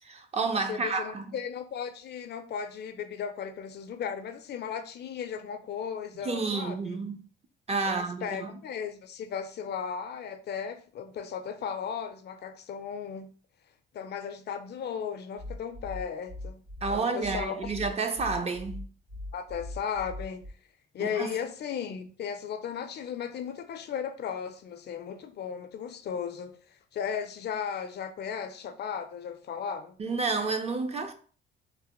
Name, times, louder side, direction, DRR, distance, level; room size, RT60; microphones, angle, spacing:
voice 1, 0.0-1.3 6.2-7.2 7.7-8.5 16.8-18.8 21.0-21.3 30.0-31.1, right 4 dB, 30° right, 0.5 m, -30 dB
voice 2, 0.7-7.0 7.8-13.3 13.9-17.7 19.3-20.5 20.9-26.6 26.9-30.0, left 7 dB, 55° left, 0.4 m, -36 dB
sound 1, 15.4-20.5, left 2 dB, 75° right, 1.5 m, -40 dB
3.2 x 2.1 x 2.9 m
cardioid pair, 90°, 20 cm